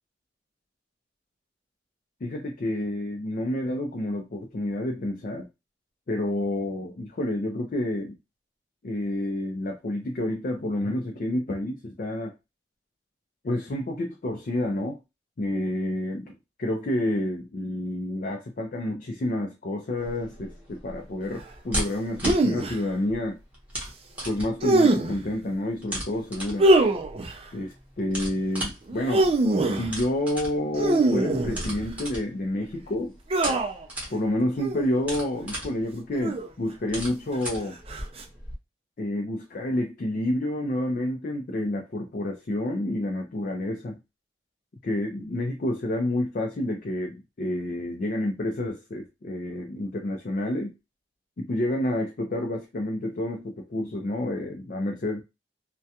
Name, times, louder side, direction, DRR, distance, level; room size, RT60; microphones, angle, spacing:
voice 1, 2.2-5.5 6.1-8.2 8.8-12.3 13.4-15.0 15.4-23.4 24.2-26.7 27.5-29.3 29.7-33.1 34.1-37.8 39.0-44.0 44.8-50.7 51.4-55.2, left 1 dB, 50° left, 2 dB, 0.4 m, -29 dB
sound 1, 20.0-38.5, right 1 dB, 10° right, 0.8 m, -38 dB
sound 2, 22.2-22.8 24.6-25.3 26.6-27.4 28.9-29.9 30.8-31.9 33.3-33.9 34.6-34.9 36.2-36.7 37.9-38.2, right 2 dB, 35° right, 0.4 m, -23 dB
2.3 x 2.2 x 2.7 m, 0.25 s
head